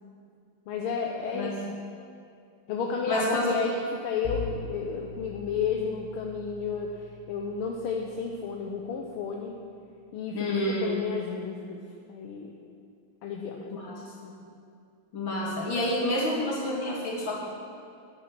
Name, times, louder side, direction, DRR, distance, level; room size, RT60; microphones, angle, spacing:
voice 1, 0.7-1.8 2.7-9.6 10.1-11.8 12.1-12.5 13.2-14.0, left 5 dB, 85° left, 1 dB, 1.7 m, -32 dB
voice 2, 3.1-3.5 10.3-11.0 13.7-13.9 14.2-14.3 15.1-17.3, left 1 dB, 65° left, -4 dB, 3.0 m, -28 dB
Bowed string instrument, 4.2-9.3, left 7 dB, 45° left, 0.8 m, -42 dB
9.9 x 9.0 x 6.0 m, 2.4 s
omnidirectional pair, 2.4 m